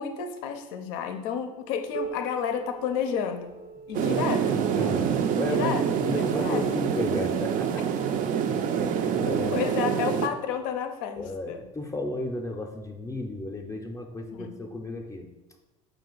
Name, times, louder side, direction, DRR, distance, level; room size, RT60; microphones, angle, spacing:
voice 1, 0.0-3.5 3.9-4.5 5.5-5.8 6.3-6.6 9.3-11.6 14.3-14.6, left 7 dB, 70° left, 7 dB, 0.5 m, -31 dB
Piano, 1.9-7.3 8.1-8.2 8.7-8.8 9.6-9.7 10.7-10.8, right 4 dB, 65° right, 0.8 m, -43 dB
sound 1, 3.9-10.3, right 8 dB, 50° right, 0.4 m, -26 dB
voice 2, 4.0-7.9 8.6-8.7 9.2-9.6 11.2-15.3, left 2 dB, 20° left, 3 dB, 0.5 m, -34 dB
4.9 x 2.4 x 3.8 m, 1.1 s
hypercardioid pair, 75°, 18 cm